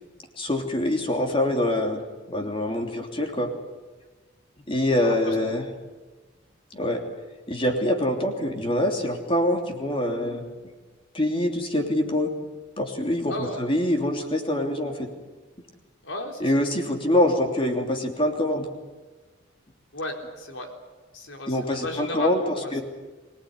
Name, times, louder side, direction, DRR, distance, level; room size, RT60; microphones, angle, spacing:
voice 1, 0.4-2.0 2.3-3.5 4.7-5.7 6.7-7.0 7.5-10.4 11.1-12.3 12.8-15.1 16.4-18.6 21.5-22.4 22.7-22.8, left 1 dB, 30° left, 3 dB, 3.0 m, -24 dB
voice 2, 5.0-5.5 13.3-13.6 16.0-16.7 19.9-20.7 21.1-22.8, left 2 dB, 90° left, 3 dB, 4.3 m, -34 dB
24.5 x 18.5 x 9.6 m, 1.3 s
head